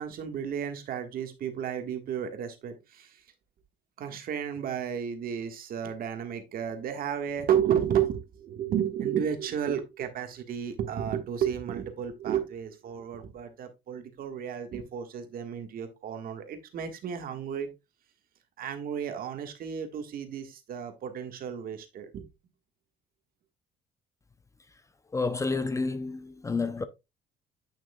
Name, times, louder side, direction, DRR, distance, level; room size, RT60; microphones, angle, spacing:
voice 1, 0.0-3.2 4.0-17.7 18.6-22.3, right 9 dB, 60° right, 1.5 m, -32 dB
voice 2, 25.1-26.8, left 3 dB, 20° left, 0.6 m, -29 dB
8.8 x 6.1 x 2.3 m
cardioid pair, 110°, 17 cm